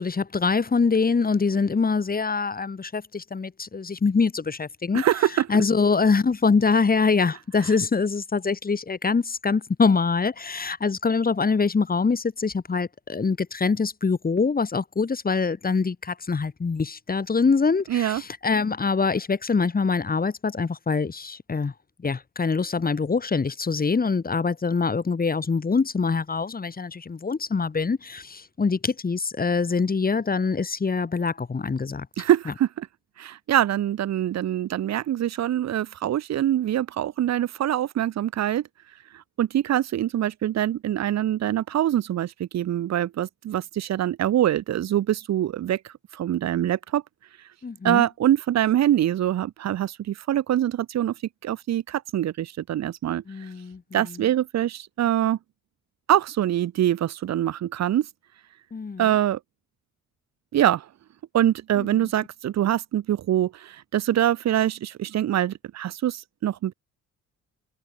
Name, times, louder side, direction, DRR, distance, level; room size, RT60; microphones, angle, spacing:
voice 1, 0.0-5.0 5.5-21.7 22.0-32.1 47.6-48.0 53.3-54.3 58.7-59.1 61.8-62.1, left 4 dB, 30° left, 2.8 m, -24 dB
voice 2, 4.9-5.5 17.9-18.2 32.2-32.9 33.2-38.7 39.1-47.0 47.8-51.1 51.4-53.5 53.9-55.4 56.1-58.1 59.0-59.4 60.5-60.9 61.3-66.7, right 12 dB, 60° right, 1.1 m, -24 dB
cardioid pair, 90°, 30 cm